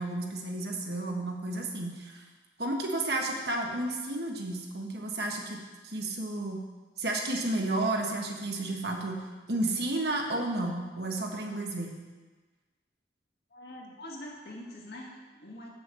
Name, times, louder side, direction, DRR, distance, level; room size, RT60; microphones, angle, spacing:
voice 1, 0.0-2.2 2.6-6.6 7.0-9.2 9.5-12.0, right 2 dB, 65° right, 1 dB, 1.4 m, -32 dB
voice 2, 13.5-15.7, left 1 dB, 65° left, -2 dB, 1.9 m, -44 dB
7.2 x 6.9 x 7.6 m, 1.3 s
head